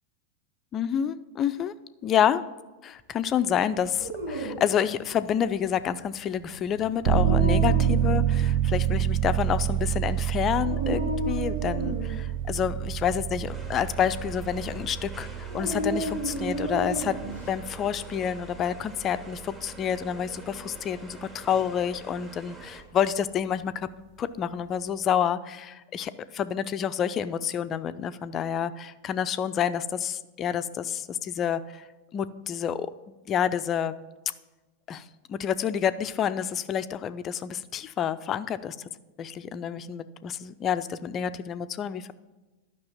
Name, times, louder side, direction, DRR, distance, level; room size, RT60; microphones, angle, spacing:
voice 1, 0.7-1.7 2.0-2.4 2.8-17.2 17.5-23.9 24.2-31.9 32.1-33.9 34.9-35.0 35.3-38.8 39.2-42.1, left 8 dB, 30° left, 13 dB, 0.5 m, -28 dB
Dog, 3.8-17.5, equal, 70° right, 1.9 m, -35 dB
sound 1, 7.0-19.6 19.9-20.0, right 11 dB, 45° right, 0.7 m, -28 dB
sound 2, 13.5-22.8, right 2 dB, 20° right, 2.0 m, -46 dB
11.5 x 6.1 x 7.2 m, 1.1 s
figure-of-eight pair, 90°, 0 cm